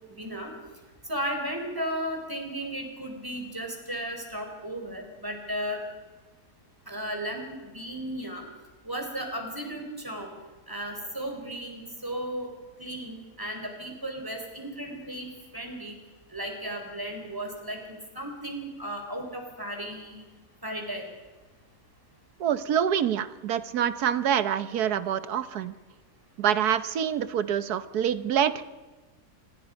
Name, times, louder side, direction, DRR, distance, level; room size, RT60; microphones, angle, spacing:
voice 1, 0.1-0.5 1.1-5.8 6.9-8.4 8.8-10.3 10.7-12.5 12.8-16.0 16.3-20.3 20.6-21.1, equal, 10° right, 3 dB, 4.3 m, -35 dB
voice 2, 22.4-25.7 26.4-28.6, right 9 dB, 75° right, 13 dB, 1.4 m, -26 dB
27.0 x 20.5 x 5.3 m, 1.3 s
omnidirectional pair, 1.7 m